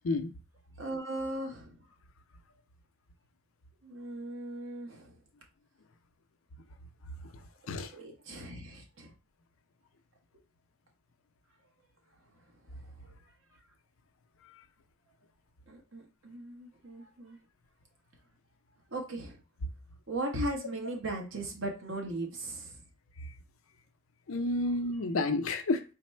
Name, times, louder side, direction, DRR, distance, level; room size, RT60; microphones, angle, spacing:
voice 1, 0.8-1.9 3.8-5.2 7.9-9.1 12.7-13.1 15.7-17.4 18.9-19.4 20.1-22.8, right 1 dB, 65° right, 1.1 m, -38 dB
voice 2, 24.3-25.8, left 2 dB, 80° left, 0.5 m, -30 dB
4.1 x 2.0 x 4.2 m
head